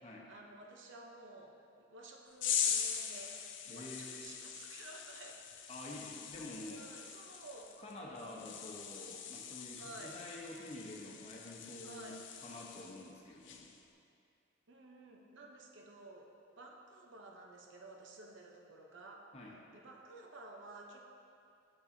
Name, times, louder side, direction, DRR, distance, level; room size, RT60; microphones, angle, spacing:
voice 1, 0.0-1.6 1.9-3.4 3.6-5.4 6.7-7.7 8.1-8.6 9.8-10.2 11.8-12.2 14.7-16.3 16.6-19.2 19.7-21.1, right 2 dB, 75° right, 0 dB, 0.8 m, -53 dB
sound 1, 2.4-13.1 13.4-13.8, left 8 dB, 75° left, 0.5 m, -41 dB
voice 2, 3.7-4.4 5.7-7.2 7.8-13.7 19.3-19.6, left 1 dB, 35° left, -2 dB, 0.9 m, -49 dB
8.4 x 6.8 x 2.7 m, 2.5 s
head